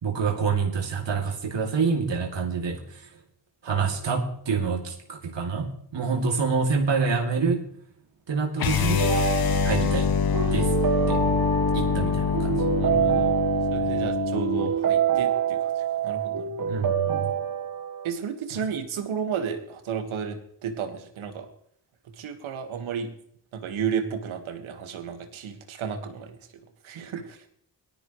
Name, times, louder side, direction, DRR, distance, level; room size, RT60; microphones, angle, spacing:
voice 1, 0.0-3.0 3.6-7.6 8.3-9.1 9.6-10.1 10.5-10.7 11.1-11.2 11.7-12.6 13.1-13.2 16.7-17.3, right 5 dB, 65° right, 1 dB, 2.7 m, -27 dB
sound 1, 8.6-14.7, left 6 dB, 50° left, 1.0 m, -25 dB
sound 2, 9.0-18.1, right 8 dB, 45° right, 1.4 m, -26 dB
voice 2, 11.9-12.3 12.8-13.4 13.7-16.6 18.0-21.5 22.2-23.1 23.5-26.3 26.8-27.4, right 7 dB, 85° right, 6 dB, 1.7 m, -33 dB
18.0 x 13.5 x 3.2 m, 0.65 s
supercardioid pair, 45°, 47 cm